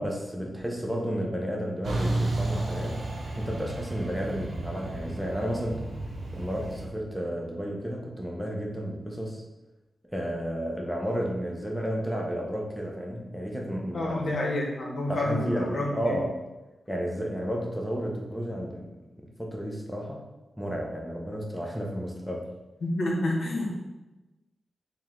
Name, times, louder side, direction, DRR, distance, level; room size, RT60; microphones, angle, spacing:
voice 1, 0.0-3.0 3.4-5.8 6.3-9.4 10.1-14.2 15.1-16.4 16.9-18.9 19.2-20.2 20.6-22.5, equal, ahead, -1 dB, 0.5 m, -32 dB
Truck, 1.8-6.9, right 2 dB, 75° right, 0.6 m, -32 dB
voice 2, 13.9-16.2 22.8-23.7, left 1 dB, 75° left, -2 dB, 0.8 m, -29 dB
4.6 x 2.1 x 3.5 m, 1.1 s
wide cardioid pair, 170°, 0 cm